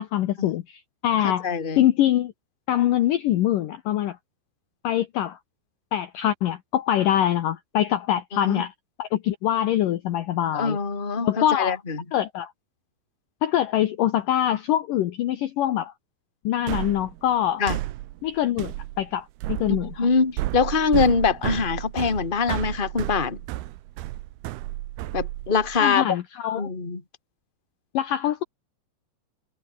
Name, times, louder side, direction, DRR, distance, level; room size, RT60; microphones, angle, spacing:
voice 1, 0.0-1.5 1.8-2.3 2.7-4.2 4.8-5.4 5.9-8.7 9.0-10.8 11.2-11.8 12.1-12.5 13.4-15.9 16.4-17.6 18.2-20.1 25.8-26.7 27.9-28.4, left 12 dB, 85° left, 1.9 m, -24 dB
voice 2, 1.2-1.9 8.4-8.6 10.5-12.0 17.6-17.8 20.0-23.4 25.1-26.2 26.5-27.0, left 5 dB, 20° left, 1.6 m, -23 dB
sound 1, 16.7-25.8, right 16 dB, 75° right, 2.4 m, -32 dB
omnidirectional pair, 5.5 m